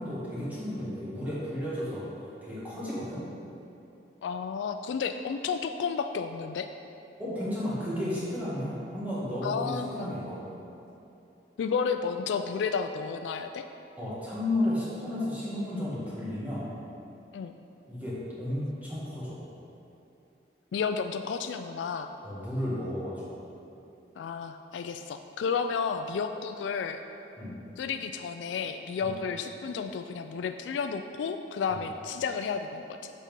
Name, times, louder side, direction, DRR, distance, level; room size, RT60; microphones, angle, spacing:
voice 1, 0.0-3.3 7.2-10.5 14.0-16.7 17.9-19.4 22.2-23.3 27.4-27.6 29.0-29.1 31.7-31.8, left 1 dB, 10° right, -9 dB, 1.6 m, -33 dB
voice 2, 4.2-6.7 9.4-10.1 11.6-13.6 17.3-17.5 20.7-22.1 24.2-27.0 27.8-33.1, left 6 dB, 90° left, 7 dB, 0.3 m, -32 dB
7.3 x 4.2 x 5.3 m, 2.8 s
head